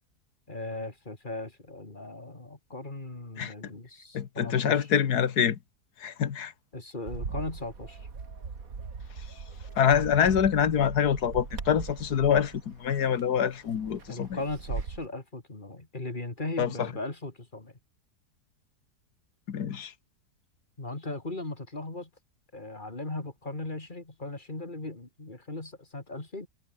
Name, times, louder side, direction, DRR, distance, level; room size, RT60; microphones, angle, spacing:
voice 1, 0.5-4.9 6.7-8.1 14.1-17.7 20.8-22.1 22.5-26.5, left 2 dB, 30° left, 3.3 m, -38 dB
voice 2, 4.1-5.6 6.0-6.5 9.8-14.4 16.6-16.9 19.5-19.9, left 8 dB, 75° left, 1.9 m, -25 dB
Bird, 7.1-15.1, right 5 dB, 60° right, 2.7 m, -39 dB
omnidirectional pair, 1.7 m